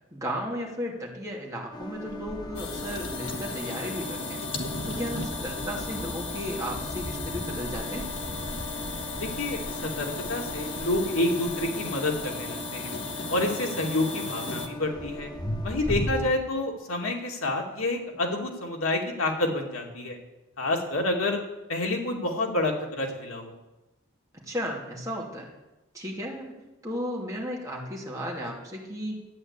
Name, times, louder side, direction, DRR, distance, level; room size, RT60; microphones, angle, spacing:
voice 1, 0.1-4.4 4.8-8.0 15.9-16.2 24.3-25.5 25.9-26.6 26.8-29.2, equal, 15° right, -2 dB, 2.7 m, -34 dB
sound 1, 1.7-16.3, left 1 dB, 20° left, 0.7 m, -38 dB
sound 2, 2.6-14.7, left 3 dB, 55° left, 1.6 m, -35 dB
voice 2, 9.2-13.0 13.3-15.3 15.6-20.2 20.6-21.4 21.7-23.6, left 2 dB, 85° left, 1 dB, 2.4 m, -28 dB
12.0 x 9.7 x 8.2 m, 1.0 s
head